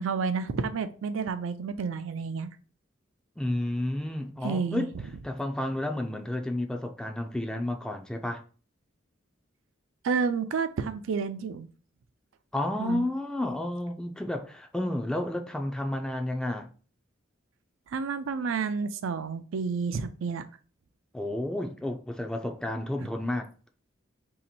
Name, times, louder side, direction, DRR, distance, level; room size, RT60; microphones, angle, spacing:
voice 1, 0.0-2.5 4.4-5.0 10.0-11.7 12.8-13.0 17.9-20.4, right 5 dB, 75° right, 0.4 m, -30 dB
voice 2, 3.4-4.9 5.2-8.4 12.5-16.7 21.1-23.5, left 1 dB, 5° left, 0.3 m, -31 dB
2.9 x 2.8 x 4.1 m
head